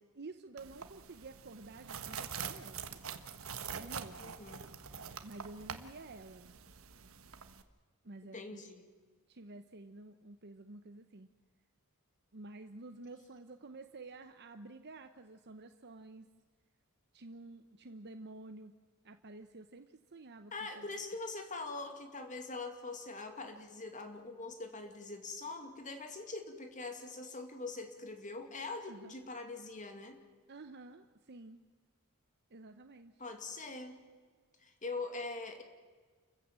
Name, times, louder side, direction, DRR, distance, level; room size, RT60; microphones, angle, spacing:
voice 1, 0.1-3.0 3.7-4.4 5.2-6.5 8.0-8.6 9.3-11.3 12.3-16.3 17.1-18.7 19.0-20.9 28.9-29.1 30.5-31.6 32.5-33.2, right 2 dB, 50° right, 8 dB, 0.9 m, -51 dB
sound 1, 0.6-7.6, right 7 dB, 65° right, 1.5 m, -45 dB
voice 2, 4.2-4.7 8.3-8.9 20.5-30.2 33.2-34.0 34.6-35.6, left 3 dB, 35° left, 6 dB, 2.5 m, -43 dB
29.5 x 15.0 x 7.6 m, 1.5 s
head